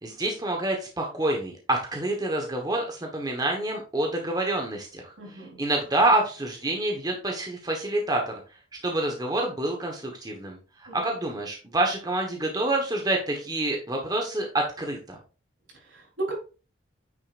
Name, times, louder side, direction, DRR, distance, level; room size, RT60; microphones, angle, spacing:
voice 1, 0.0-5.1 5.6-8.3 8.8-15.2, right 1 dB, 20° right, 1 dB, 1.2 m, -27 dB
voice 2, 5.2-5.6 10.9-11.1 15.8-16.3, right 2 dB, 80° right, -2 dB, 3.8 m, -35 dB
8.7 x 6.5 x 2.5 m, 0.35 s
head